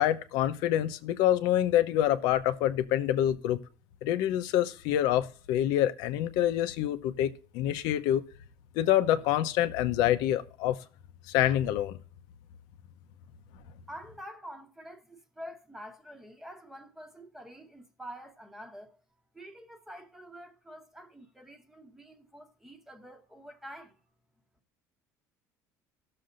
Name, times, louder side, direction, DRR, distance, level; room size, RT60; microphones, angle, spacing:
voice 1, 0.0-3.6 4.0-8.2 8.7-10.8 11.3-12.0, left 12 dB, 80° left, 0.8 m, -26 dB
voice 2, 13.9-19.0 19.3-24.0, equal, 5° right, 1.1 m, -47 dB
17.5 x 6.7 x 2.5 m
cardioid pair, 135°, 7 cm